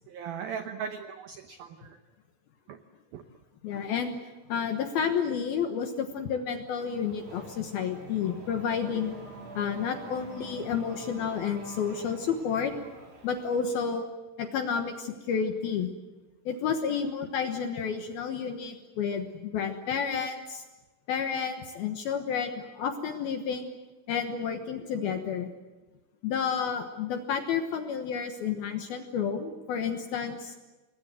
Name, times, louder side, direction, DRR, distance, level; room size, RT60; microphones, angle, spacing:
voice 1, 0.1-2.0 2.7-2.8 3.1-3.2, right 7 dB, 85° right, 7 dB, 2.1 m, -38 dB
voice 2, 3.6-4.2 4.5-9.2 9.6-12.7 13.2-14.0 14.4-15.9 16.5-20.6 21.1-23.7 24.1-25.5 26.2-30.5, left 7 dB, 70° left, 5 dB, 2.4 m, -30 dB
Race car auto racing / Accelerating revving vroom, 6.7-14.0, right 2 dB, 60° right, 8.5 m, -46 dB
29.0 x 21.0 x 7.7 m, 1.2 s
omnidirectional pair, 5.8 m